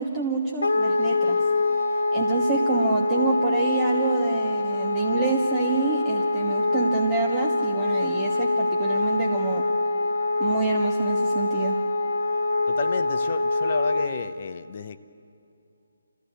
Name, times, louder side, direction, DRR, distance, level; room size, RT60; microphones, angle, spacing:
voice 1, 0.0-1.4 2.1-9.6 10.4-11.8, right 5 dB, 20° right, 0 dB, 1.4 m, -27 dB
Wind instrument woodwind instrument, 0.6-14.1, left 2 dB, 65° left, 1.2 m, -24 dB
voice 2, 12.7-15.0, left 5 dB, 40° left, 10 dB, 0.9 m, -32 dB
28.0 x 15.0 x 8.2 m, 2.6 s
figure-of-eight pair, 145°, 0 cm